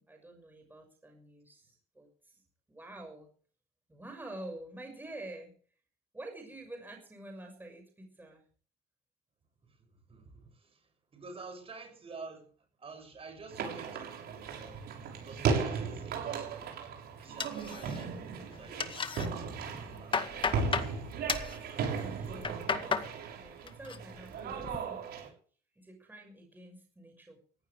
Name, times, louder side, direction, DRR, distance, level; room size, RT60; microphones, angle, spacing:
voice 1, 0.0-2.4 2.7-3.3 3.9-5.5 6.1-8.4 21.9-22.8 23.3-25.1 25.7-27.4, right 1 dB, 10° right, 6.4 m, -48 dB
voice 2, 9.7-12.5 12.8-16.8 17.2-20.6 21.9-22.1, right 4 dB, 35° right, 7.1 m, -50 dB
sound 1, 13.5-25.3, right 5 dB, 70° right, 7.0 m, -36 dB
sound 2, 17.4-18.2 18.5-19.3 19.7-20.9 21.3-21.6 22.2-23.1 23.5-24.0 24.3-24.8, left 5 dB, 30° left, 2.0 m, -34 dB
18.5 x 16.0 x 3.5 m
cardioid pair, 110°, 17 cm